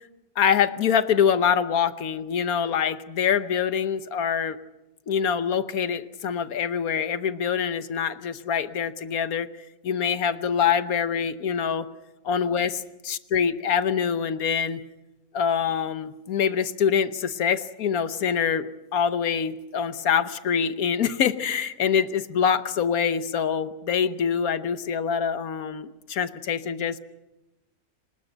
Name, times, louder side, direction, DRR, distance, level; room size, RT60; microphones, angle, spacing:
voice 1, 0.4-4.6 5.1-9.5 9.8-11.9 12.2-14.8 15.3-27.0, left 7 dB, 85° left, 13 dB, 1.5 m, -25 dB
24.5 x 20.5 x 7.9 m, 0.99 s
omnidirectional pair, 1.5 m